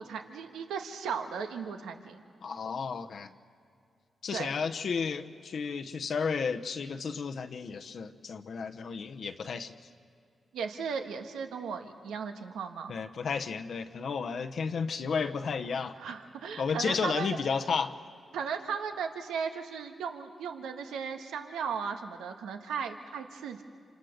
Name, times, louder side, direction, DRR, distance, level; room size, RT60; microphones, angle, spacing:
voice 1, 0.0-2.2 4.3-4.5 10.5-12.9 16.0-17.4 18.3-23.6, right 6 dB, 90° right, 5 dB, 1.3 m, -36 dB
voice 2, 2.4-3.3 4.2-9.7 12.9-16.0 16.6-17.9, left 5 dB, 70° left, 7 dB, 0.9 m, -32 dB
27.0 x 26.5 x 6.6 m, 2.4 s
supercardioid pair, 50°, 0 cm